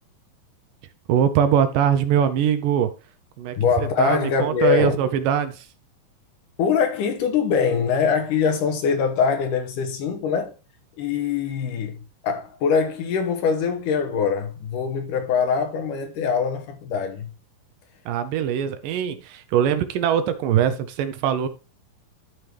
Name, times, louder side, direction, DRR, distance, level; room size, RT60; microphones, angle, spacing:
voice 1, 1.1-2.9 3.4-3.6 4.0-5.6 18.1-21.5, right 9 dB, 75° right, 2.3 m, -22 dB
voice 2, 3.6-5.0 6.6-10.5 11.0-12.0 12.2-17.3, left 6 dB, 70° left, 2.5 m, -23 dB
12.5 x 4.5 x 3.3 m
omnidirectional pair, 4.1 m